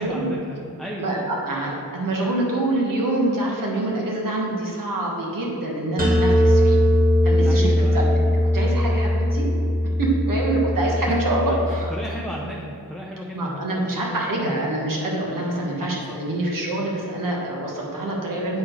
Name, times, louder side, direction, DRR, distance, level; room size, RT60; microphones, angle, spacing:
voice 1, 0.0-1.3 7.4-8.3 11.1-14.7 15.8-16.2, equal, ahead, -4 dB, 0.6 m, -35 dB
voice 2, 1.0-6.8 7.2-8.1 8.5-9.5 10.0-11.9 13.3-18.6, right 2 dB, 60° right, -2 dB, 1.5 m, -25 dB
sound 1, 6.0-11.8, left 1 dB, 25° right, 1.1 m, -20 dB
8.6 x 4.2 x 4.6 m, 2.7 s
wide cardioid pair, 125°, 37 cm